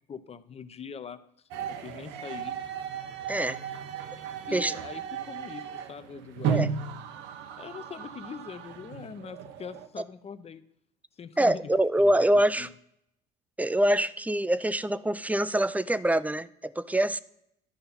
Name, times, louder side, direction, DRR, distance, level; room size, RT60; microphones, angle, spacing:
voice 1, 0.1-1.2 1.7-2.6 4.4-7.0 7.6-10.6 11.2-11.7 12.0-12.3 12.6-12.7, left 6 dB, 30° left, 13 dB, 0.7 m, -42 dB
sound 1, 1.5-9.9, right 7 dB, 70° right, 0.8 m, -35 dB
voice 2, 11.4-12.7 13.6-17.2, right 1 dB, 5° right, 16 dB, 0.4 m, -25 dB
11.5 x 5.5 x 4.1 m, 0.76 s
supercardioid pair, 75°, 20 cm